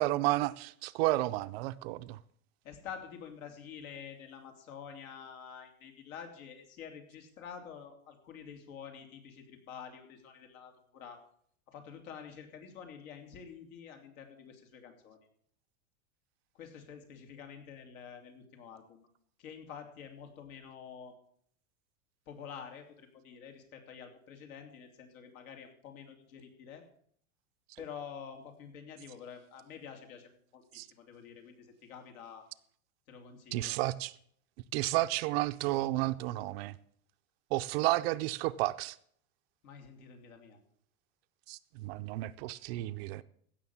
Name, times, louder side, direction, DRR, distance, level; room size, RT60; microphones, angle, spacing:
voice 1, 0.0-2.2 30.7-30.9 33.5-34.1 34.7-36.8 37.5-39.0 41.5-43.2, right 18 dB, 45° right, 0.5 m, -32 dB
voice 2, 2.6-11.2 11.7-15.2 16.5-19.1 19.4-21.2 22.3-26.9 27.8-32.4 33.1-33.8 39.6-40.6, left 7 dB, 75° left, 3.1 m, -48 dB
16.0 x 6.4 x 7.2 m
supercardioid pair, 155°, 42 cm